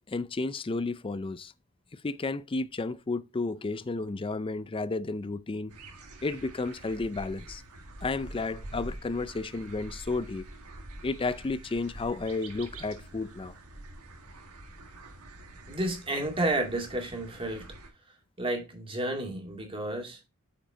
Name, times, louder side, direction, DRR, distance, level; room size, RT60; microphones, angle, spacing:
voice 1, 0.1-1.5 1.9-5.7 6.2-7.6 8.0-10.4 11.0-13.5, left 3 dB, 25° left, 0.4 m, -32 dB
sound 1, 5.7-17.9, right 2 dB, 75° right, 1.7 m, -46 dB
voice 2, 15.7-17.7 18.4-20.2, right 1 dB, 25° right, 2.2 m, -31 dB
9.0 x 4.9 x 3.7 m
head